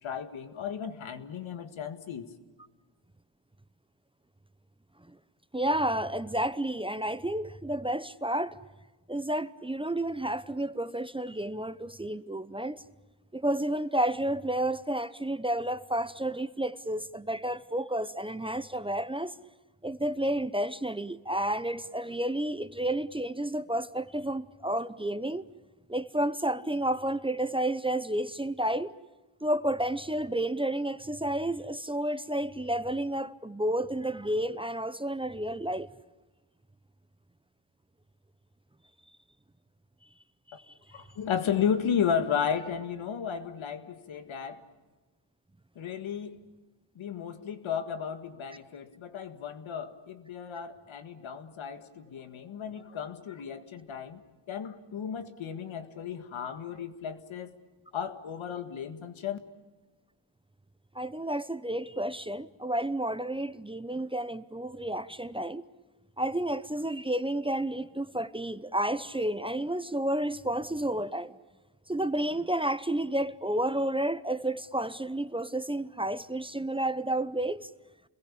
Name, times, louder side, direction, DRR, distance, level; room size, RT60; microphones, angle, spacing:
voice 1, 0.0-2.3 40.9-44.7 45.8-46.4 47.0-54.2 54.5-57.6 57.9-59.4, left 7 dB, 80° left, 1.9 m, -34 dB
voice 2, 5.5-8.6 9.1-12.8 13.3-19.3 19.8-25.5 25.9-28.9 29.4-35.9 40.7-40.8 60.9-65.6 66.2-71.4 71.9-77.7, right 1 dB, 10° right, 0.8 m, -31 dB
29.0 x 21.5 x 8.6 m
cardioid pair, 75°, 47 cm